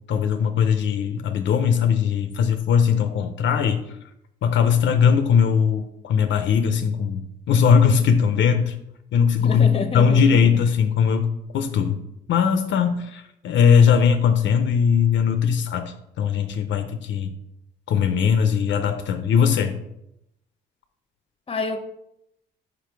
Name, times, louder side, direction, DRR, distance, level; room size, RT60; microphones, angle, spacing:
voice 1, 0.1-3.8 4.4-8.7 9.1-12.0 12.3-17.3 17.9-19.7, left 7 dB, 70° left, 0.6 m, -20 dB
voice 2, 9.4-10.4 21.5-21.8, left 3 dB, 30° left, 0.8 m, -27 dB
5.1 x 4.9 x 4.5 m
cardioid pair, 90°, 20 cm